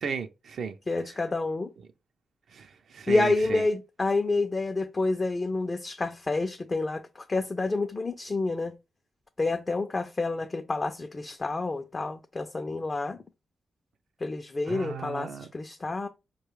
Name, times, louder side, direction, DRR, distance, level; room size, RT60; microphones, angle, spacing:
voice 1, 0.0-0.8 2.5-3.7 14.7-15.5, right 6 dB, 70° right, 0.5 m, -35 dB
voice 2, 0.9-1.7 3.1-8.8 9.4-13.2 14.2-16.1, left 3 dB, 35° left, 0.5 m, -28 dB
4.7 x 2.3 x 3.1 m
supercardioid pair, 45°, 0 cm